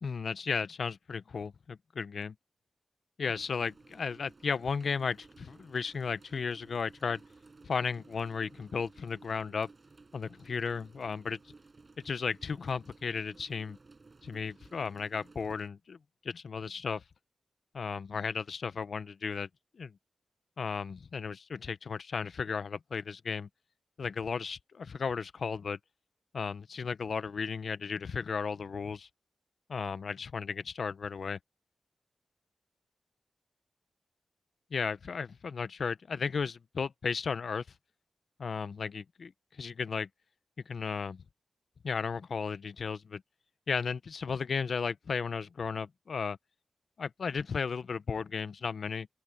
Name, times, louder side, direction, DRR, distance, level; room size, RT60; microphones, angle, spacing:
voice 1, 0.0-2.3 3.2-7.2 7.6-9.7 10.1-11.4 12.0-13.8 14.2-16.0 16.2-17.0 17.7-19.5 19.7-19.9 20.6-23.5 24.0-25.8 26.3-29.1 29.7-31.4 34.7-37.6 38.4-39.3 39.6-40.1 40.7-41.2 41.8-43.2 43.7-46.4 47.0-49.1, left 5 dB, 70° left, 0.7 m, -34 dB
sound 1, 3.2-15.7, right 3 dB, 40° right, 5.2 m, -57 dB
open air
wide cardioid pair, 110°, 0 cm